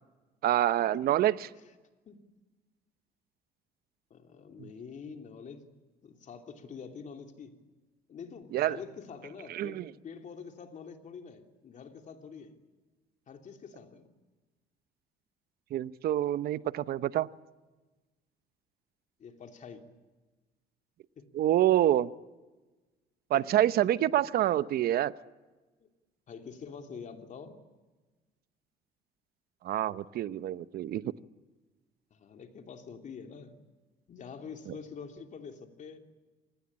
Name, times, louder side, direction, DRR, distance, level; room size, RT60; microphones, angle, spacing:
voice 1, 0.4-1.5 8.5-8.8 9.5-9.9 15.7-17.3 21.3-22.1 23.3-25.1 29.6-31.0, right 13 dB, 65° right, 15 dB, 0.9 m, -27 dB
voice 2, 4.1-5.6 6.0-7.5 8.1-12.5 13.3-14.1 19.2-19.8 21.2-21.3 23.3-23.5 25.8-25.9 26.3-27.6 32.1-33.7 34.1-36.0, left 6 dB, 45° left, 5 dB, 3.1 m, -46 dB
26.0 x 19.5 x 8.7 m, 1.2 s
cardioid pair, 110°, 17 cm